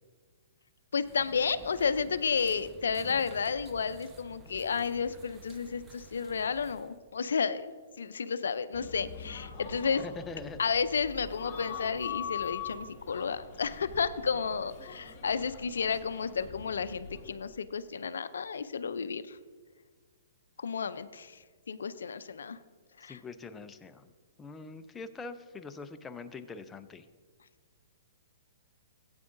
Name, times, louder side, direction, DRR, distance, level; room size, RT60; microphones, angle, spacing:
voice 1, 0.9-7.7 8.0-10.0 10.6-19.4 20.6-21.4 21.7-22.6 23.0-23.2, left 6 dB, 80° left, 13 dB, 0.4 m, -32 dB
sound 1, 1.0-7.0, right 2 dB, 20° right, 0.8 m, -52 dB
sound 2, 8.7-17.3, left 7 dB, 30° left, 1.6 m, -43 dB
voice 2, 10.0-10.6 23.1-24.1 24.4-27.1, left 4 dB, 15° left, 9 dB, 0.5 m, -43 dB
15.0 x 8.8 x 2.6 m, 1.5 s
hypercardioid pair, 135°, 0 cm